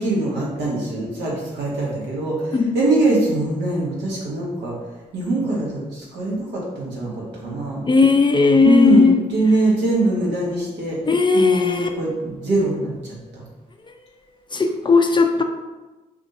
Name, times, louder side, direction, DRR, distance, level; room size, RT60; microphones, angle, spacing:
voice 1, 0.0-4.7 5.1-7.8 8.6-11.0 11.3-13.4, right 2 dB, 75° right, -5 dB, 1.0 m, -22 dB
voice 2, 7.9-9.2 11.0-11.9 14.5-15.4, left 4 dB, 25° left, 5 dB, 0.4 m, -16 dB
2.6 x 2.4 x 4.0 m, 1.1 s
hypercardioid pair, 40°, 18 cm